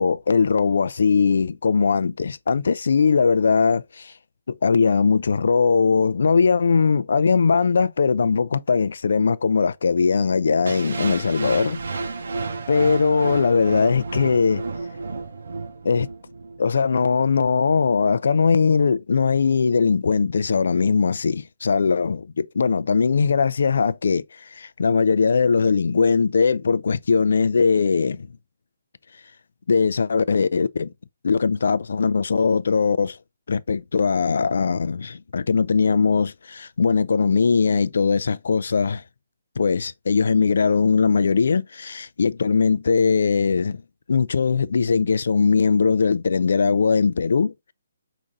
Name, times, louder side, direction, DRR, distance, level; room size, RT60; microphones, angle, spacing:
voice 1, 0.0-4.1 4.5-11.8 12.7-14.6 15.8-16.1 16.6-28.3 29.7-30.9 31.2-33.2 33.5-39.0 39.6-43.8 44.1-47.7, left 5 dB, 70° left, 0.4 m, -20 dB
sound 1, 10.6-16.7, right 3 dB, 75° right, 0.8 m, -31 dB
5.1 x 2.7 x 3.6 m
hypercardioid pair, 165°, 0 cm